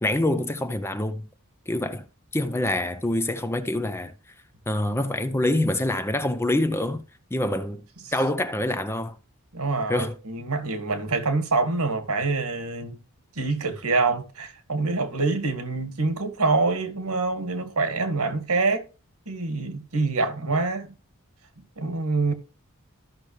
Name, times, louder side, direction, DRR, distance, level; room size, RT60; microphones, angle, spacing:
voice 1, 0.0-1.2 1.7-2.1 2.3-4.1 4.7-7.0 7.3-7.8 8.1-9.1 9.9-10.2, left 1 dB, 10° left, 0.5 m, -25 dB
voice 2, 9.5-13.0 13.4-18.8 19.3-20.9 21.8-22.3, right 3 dB, 85° right, 1.8 m, -25 dB
14.0 x 5.8 x 3.2 m
head